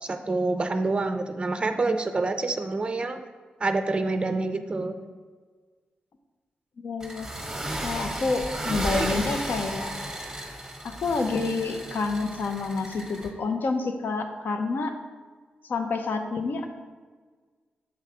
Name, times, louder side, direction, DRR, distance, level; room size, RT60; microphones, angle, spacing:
voice 1, 0.0-3.2 3.6-5.0 8.9-9.2, right 3 dB, 30° right, 7 dB, 0.4 m, -27 dB
voice 2, 6.8-7.3 7.8-9.9 10.8-14.9 15.7-16.7, left 4 dB, 65° left, 6 dB, 0.6 m, -28 dB
sound 1, 7.0-13.3, right 1 dB, 10° right, 1.0 m, -34 dB
6.9 x 3.3 x 4.9 m, 1.5 s
cardioid pair, 85°, 3 cm